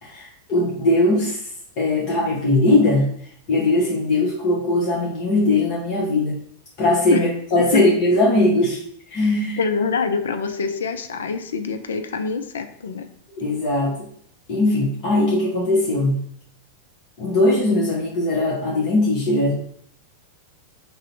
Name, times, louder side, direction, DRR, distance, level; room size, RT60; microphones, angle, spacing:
voice 1, 0.0-1.4 1.8-3.1 3.5-6.4 6.8-8.8 9.1-9.6 13.4-14.1 14.5-16.2 17.2-19.5, left 2 dB, 40° left, -5 dB, 0.8 m, -20 dB
voice 2, 9.6-13.1, left 5 dB, 65° left, 7 dB, 0.3 m, -25 dB
2.7 x 2.0 x 3.9 m, 0.65 s
figure-of-eight pair, 90°, 0 cm